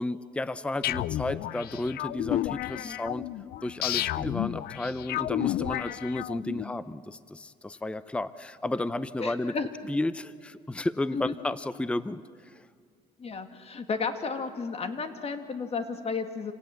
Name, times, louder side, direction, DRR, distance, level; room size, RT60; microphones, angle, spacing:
voice 1, 0.0-3.3 3.6-9.5 9.9-12.7, left 2 dB, 5° left, 15 dB, 0.6 m, -32 dB
sound 1, 0.8-6.6, left 14 dB, 70° left, 0.5 m, -31 dB
voice 2, 9.2-9.7 11.1-11.3 13.2-16.5, left 4 dB, 35° left, 7 dB, 2.1 m, -33 dB
27.5 x 18.0 x 7.7 m, 2.1 s
cardioid pair, 110°, 17 cm